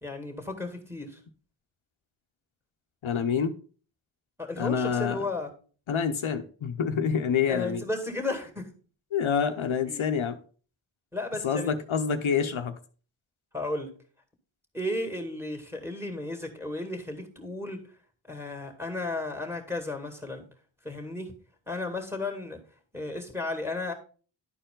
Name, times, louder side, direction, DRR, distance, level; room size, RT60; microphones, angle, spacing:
voice 1, 0.0-1.2 4.4-5.5 7.5-8.7 9.9-10.1 11.1-11.7 13.5-13.9 14.7-17.8 18.3-20.5 20.8-21.3 21.7-22.6 22.9-23.9, left 2 dB, 5° right, 2.1 m, -34 dB
voice 2, 3.0-3.5 4.6-5.2 5.9-7.8 9.1-10.4 11.4-12.8, left 7 dB, 75° left, 0.7 m, -27 dB
11.0 x 4.5 x 3.7 m
wide cardioid pair, 50°, 48 cm